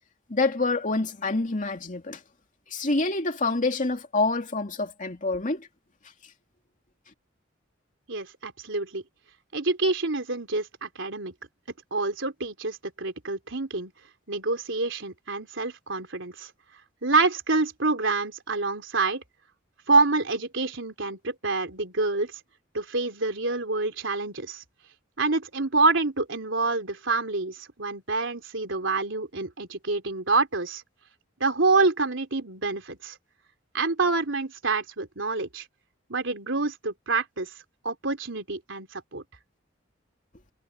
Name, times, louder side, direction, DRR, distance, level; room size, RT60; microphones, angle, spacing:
voice 1, 0.3-2.2 2.7-5.7, left 3 dB, 40° left, 2.4 m, -27 dB
voice 2, 8.1-9.0 9.5-11.3 11.9-13.9 14.3-16.5 17.0-19.2 19.9-22.3 22.7-24.6 25.2-30.8 31.4-33.2 33.7-35.6 36.1-37.5 37.8-39.2, right 3 dB, 70° right, 3.9 m, -27 dB
head